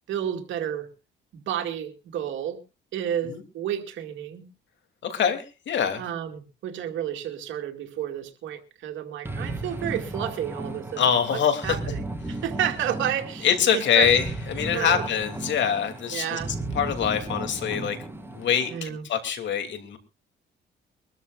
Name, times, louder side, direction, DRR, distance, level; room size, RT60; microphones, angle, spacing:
voice 1, 0.1-0.9 1.3-2.6 2.9-4.5 6.0-11.0 11.3-11.8 12.3-14.1 14.7-15.1 16.1-16.5 18.7-19.1, right 10 dB, 75° right, 5 dB, 2.3 m, -31 dB
voice 2, 5.0-6.0 11.0-11.8 13.4-16.4 16.7-18.0 18.3-20.0, left 8 dB, 65° left, 7 dB, 2.9 m, -24 dB
sound 1, 9.2-18.8, right 2 dB, 10° right, 2.7 m, -35 dB
23.5 x 13.5 x 2.5 m, 0.30 s
cardioid pair, 90°, 20 cm